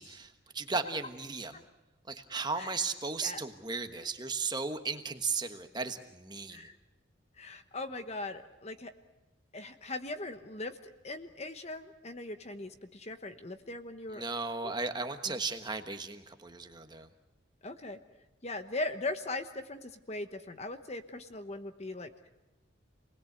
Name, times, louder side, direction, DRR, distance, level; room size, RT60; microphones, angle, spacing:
voice 1, 0.0-1.5 2.1-6.6 14.1-17.1, right 4 dB, 20° right, 7 dB, 1.3 m, -36 dB
voice 2, 7.4-8.9 9.5-10.8 11.0-14.2 14.6-14.7 15.2-15.4 17.6-18.0 18.4-22.3, left 2 dB, 35° left, 9 dB, 1.1 m, -40 dB
28.0 x 20.0 x 8.1 m, 1.0 s
head